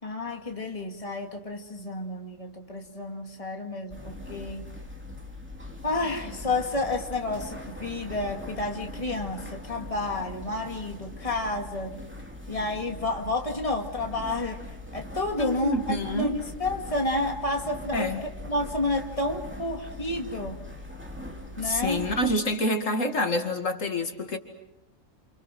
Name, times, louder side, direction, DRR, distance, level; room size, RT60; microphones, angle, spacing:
voice 1, 0.0-4.6 5.8-12.0 12.5-14.6 14.9-20.7 21.6-22.1, left 2 dB, 25° left, 3 dB, 2.4 m, -30 dB
sound 1, 3.9-22.4, left 1 dB, 10° right, 2.9 m, -41 dB
voice 2, 15.4-16.4 17.9-18.2 21.6-24.4, left 1 dB, 80° left, 5 dB, 2.7 m, -27 dB
29.0 x 28.5 x 6.2 m, 0.84 s
omnidirectional pair, 1.3 m